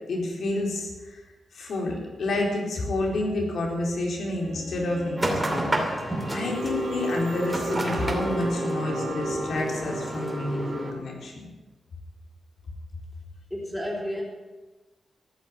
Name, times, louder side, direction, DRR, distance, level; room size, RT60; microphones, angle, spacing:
voice 1, 0.1-1.2 1.5-5.8 6.3-11.5, left 2 dB, 70° left, 0 dB, 4.2 m, -29 dB
Bowed string instrument, 4.2-9.6, equal, 60° right, 3.6 m, -41 dB
sound 1, 5.2-10.9, right 1 dB, 15° right, 2.6 m, -29 dB
voice 2, 13.5-14.2, equal, 10° left, -4 dB, 3.9 m, -31 dB
14.0 x 10.5 x 8.6 m, 1.2 s
wide cardioid pair, 155°, 0 cm